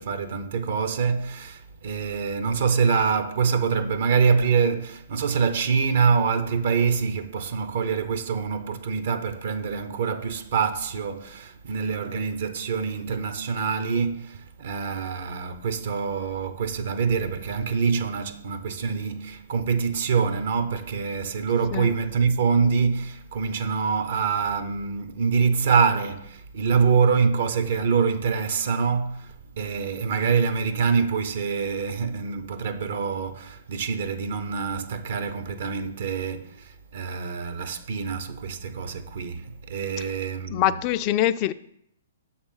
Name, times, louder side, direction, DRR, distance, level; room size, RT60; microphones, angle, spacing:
voice 1, 0.0-41.0, right 5 dB, 60° right, 0.7 m, -25 dB
voice 2, 40.5-41.5, left 13 dB, 35° left, 0.3 m, -23 dB
6.5 x 3.9 x 5.6 m
hypercardioid pair, 125°, 0 cm